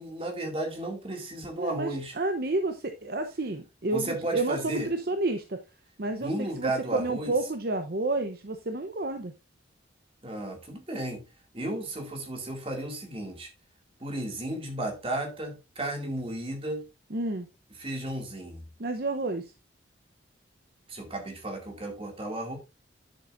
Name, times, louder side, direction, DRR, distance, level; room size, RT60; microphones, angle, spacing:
voice 1, 0.0-2.2 3.9-4.9 6.1-7.3 10.2-11.2 11.5-13.5 14.0-16.8 17.8-18.7 20.9-22.6, right 1 dB, 30° right, 2.4 m, -34 dB
voice 2, 1.6-5.6 6.0-9.3 17.1-17.5 18.8-19.5, right 2 dB, 55° right, 0.8 m, -30 dB
9.8 x 7.5 x 2.6 m
head